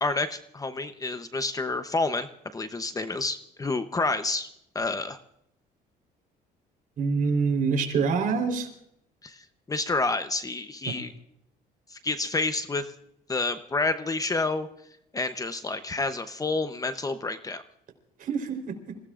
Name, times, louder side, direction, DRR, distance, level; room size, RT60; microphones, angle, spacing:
voice 1, 0.0-2.3 2.5-4.5 4.7-5.2 9.2-9.4 9.7-11.1 11.9-12.9 13.3-14.7 15.1-17.6, left 3 dB, 20° left, 10 dB, 0.9 m, -29 dB
voice 2, 7.0-8.7 10.9-11.0 18.2-18.9, right 5 dB, 55° right, 4 dB, 4.1 m, -26 dB
28.0 x 17.0 x 2.5 m, 0.76 s
cardioid pair, 110°, 17 cm